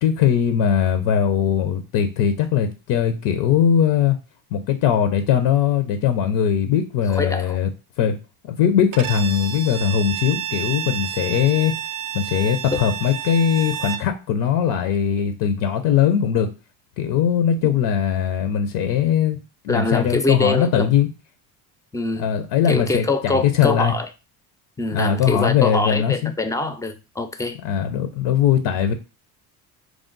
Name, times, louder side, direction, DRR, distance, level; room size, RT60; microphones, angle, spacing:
voice 1, 0.0-4.2 4.5-7.7 8.0-8.2 8.4-11.7 12.1-16.5 17.0-19.4 19.6-21.1 22.2-23.9 24.9-26.3 27.6-28.9, left 8 dB, 85° left, 0.6 m, -20 dB
voice 2, 7.1-7.6 17.6-17.8 19.7-20.9 21.9-22.3 22.7-24.1 24.8-27.6, left 2 dB, 10° left, 0.3 m, -24 dB
Bowed string instrument, 8.9-14.1, right 10 dB, 50° right, 0.5 m, -30 dB
4.8 x 2.0 x 3.8 m
cardioid pair, 115°, 40 cm